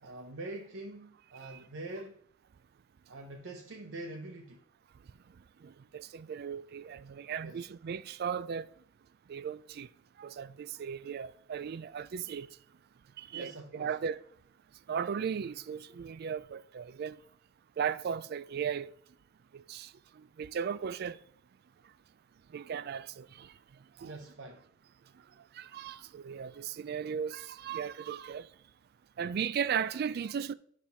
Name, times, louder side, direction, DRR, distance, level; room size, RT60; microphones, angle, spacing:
voice 1, 0.0-2.2 3.1-4.6 7.4-7.7 13.3-14.0 24.0-24.6, right 2 dB, 85° right, 0.7 m, -44 dB
voice 2, 5.6-8.7 9.3-9.9 10.2-12.5 13.2-14.2 14.9-17.2 17.8-18.9 19.5-21.2 22.5-23.5 24.0-24.2 25.5-28.5 29.2-30.5, right 7 dB, 55° right, 0.3 m, -36 dB
9.5 x 3.6 x 5.7 m
head